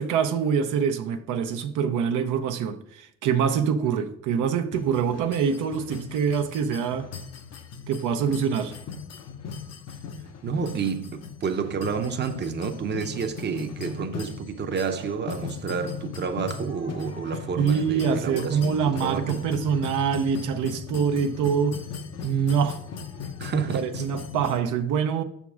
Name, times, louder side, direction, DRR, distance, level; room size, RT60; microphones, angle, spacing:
voice 1, 0.0-7.1 7.9-8.7 17.6-21.8 22.2-22.8 23.7-25.2, right 7 dB, 85° right, 0.6 m, -25 dB
sound 1, 4.7-24.6, left 5 dB, 55° left, 0.7 m, -38 dB
voice 2, 10.4-19.4 23.4-24.0, right 6 dB, 35° right, 0.6 m, -30 dB
6.1 x 3.6 x 6.0 m
cardioid pair, 90°, 30 cm